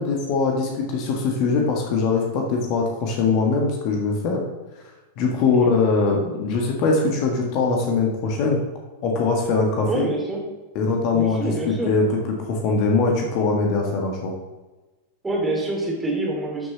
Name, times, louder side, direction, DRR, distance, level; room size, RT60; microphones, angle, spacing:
voice 1, 0.0-4.4 5.2-8.6 9.0-10.0 10.7-12.2 12.4-14.3, left 4 dB, 40° left, 1 dB, 1.5 m, -22 dB
voice 2, 9.8-10.4 11.1-12.0 15.2-16.7, right 2 dB, 10° right, -1 dB, 2.7 m, -26 dB
12.5 x 6.4 x 3.1 m, 1.2 s
figure-of-eight pair, 90°, 0 cm